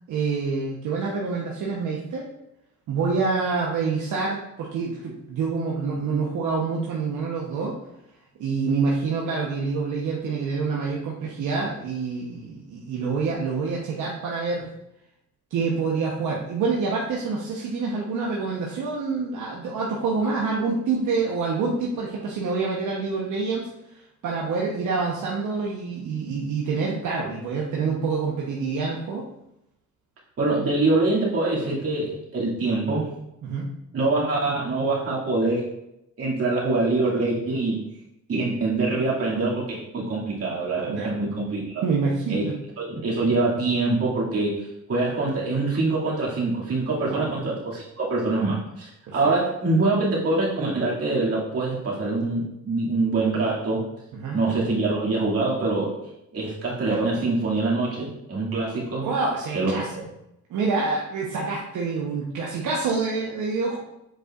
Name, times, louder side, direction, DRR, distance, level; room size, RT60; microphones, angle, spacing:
voice 1, 0.1-2.3 2.9-7.7 8.4-14.7 15.5-23.7 24.2-29.2 33.4-33.7 40.9-41.1 41.8-42.5 47.1-47.3 49.1-49.2 54.1-54.4 59.0-59.9 60.5-63.8, right 4 dB, 75° right, -3 dB, 1.0 m, -27 dB
voice 2, 30.4-33.1 33.9-35.7 36.2-37.8 38.3-41.8 42.3-42.5 42.8-44.6 44.9-53.8 54.3-56.0 56.3-59.1 59.5-60.0, right 3 dB, 50° right, -5 dB, 2.4 m, -24 dB
7.6 x 5.2 x 2.5 m, 0.85 s
cardioid pair, 90°, 30 cm